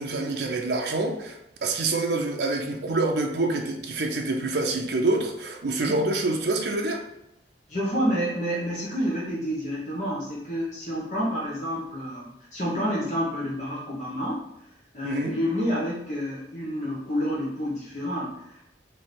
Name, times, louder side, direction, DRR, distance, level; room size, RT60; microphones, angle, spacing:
voice 1, 0.0-7.0 15.0-15.4, right 2 dB, 70° right, 2 dB, 0.6 m, -26 dB
voice 2, 7.7-14.5 14.9-18.6, equal, 40° left, -5 dB, 1.2 m, -29 dB
3.8 x 3.3 x 4.2 m, 0.85 s
head